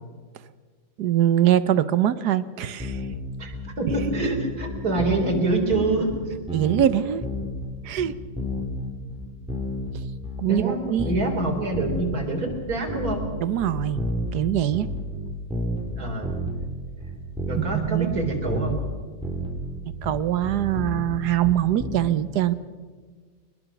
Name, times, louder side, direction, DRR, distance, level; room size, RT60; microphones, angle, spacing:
voice 1, 1.0-3.0 3.4-3.5 6.5-7.2 7.8-8.1 10.4-11.1 13.4-14.0 14.3-14.9 17.6-18.1 20.0-22.5, right 11 dB, 65° right, 15 dB, 1.3 m, -23 dB
sound 1, 2.8-3.2 3.5-4.3 4.6-5.4 5.7-6.9 7.2-7.7 8.0-9.9 10.2-10.6 11.0-12.2 12.5-13.3 13.6-16.7 17.0-17.8 18.1-18.9 19.2-21.9, left 1 dB, 5° right, 3.4 m, -31 dB
voice 2, 3.6-6.3 10.5-10.8 11.0-13.3 16.0-16.3 17.5-18.8, right 2 dB, 50° right, 2 dB, 4.1 m, -26 dB
23.0 x 21.0 x 6.0 m, 1.5 s
omnidirectional pair, 2.1 m